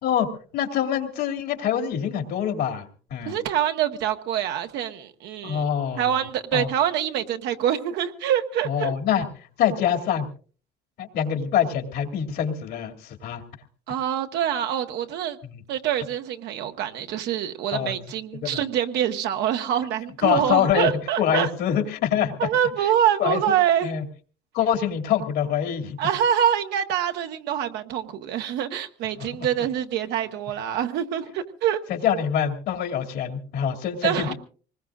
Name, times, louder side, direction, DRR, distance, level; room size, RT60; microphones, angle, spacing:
voice 1, 0.5-2.8 3.1-3.4 5.4-6.2 6.5-6.7 8.6-9.3 9.6-10.3 11.0-13.4 15.4-15.6 17.7-18.0 18.4-18.6 20.2-20.9 21.2-22.3 23.2-23.5 23.8-24.0 24.5-26.0 29.2-29.5 31.9-34.3, left 9 dB, 80° left, 2.5 m, -25 dB
voice 2, 3.2-5.7 5.9-8.9 13.9-15.4 15.7-21.5 22.4-23.9 26.0-31.8 34.0-34.3, right 10 dB, 85° right, 1.3 m, -25 dB
25.0 x 20.0 x 2.5 m
cardioid pair, 110°, 17 cm